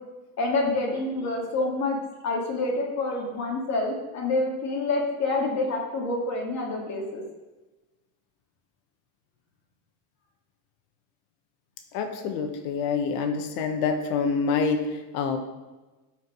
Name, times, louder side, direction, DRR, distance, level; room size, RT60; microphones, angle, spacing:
voice 1, 0.4-2.0 2.2-7.2, left 2 dB, 35° left, -1 dB, 2.7 m, -27 dB
voice 2, 11.9-15.4, left 5 dB, 80° left, 6 dB, 1.5 m, -26 dB
12.5 x 5.2 x 5.3 m, 1.1 s
cardioid pair, 155°, 44 cm